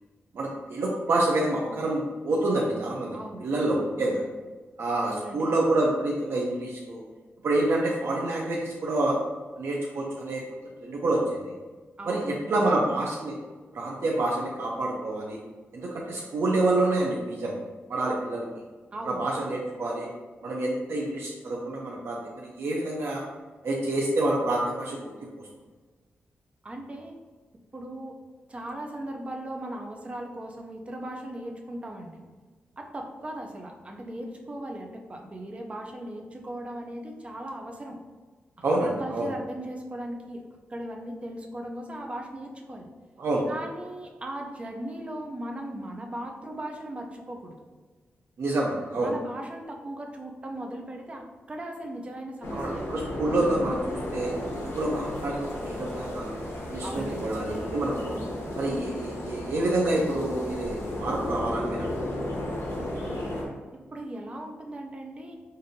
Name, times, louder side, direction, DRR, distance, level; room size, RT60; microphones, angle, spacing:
voice 1, 0.3-4.2 4.8-7.0 7.4-9.2 9.6-10.4 10.8-11.5 12.1-12.2 12.5-13.3 13.7-15.4 15.7-17.6 17.9-18.5 19.0-20.1 20.4-23.2 23.6-25.1 38.6-39.3 43.2-43.4 48.4-49.1 52.5-56.3 56.7-58.2 58.5-61.9, right 2 dB, 70° right, -3 dB, 0.5 m, -27 dB
voice 2, 3.1-3.4 5.1-5.5 12.0-12.8 18.9-19.2 26.6-27.1 27.7-28.2 28.5-32.1 32.8-38.0 38.8-40.4 40.7-42.9 43.5-47.6 49.0-52.6 56.8-57.3 62.8-63.3 63.7-65.4, right 1 dB, 30° right, 1 dB, 0.5 m, -38 dB
sound 1, 52.4-63.5, left 1 dB, 70° left, 0.8 m, -34 dB
5.1 x 2.5 x 2.7 m, 1.3 s
wide cardioid pair, 130°, 4 cm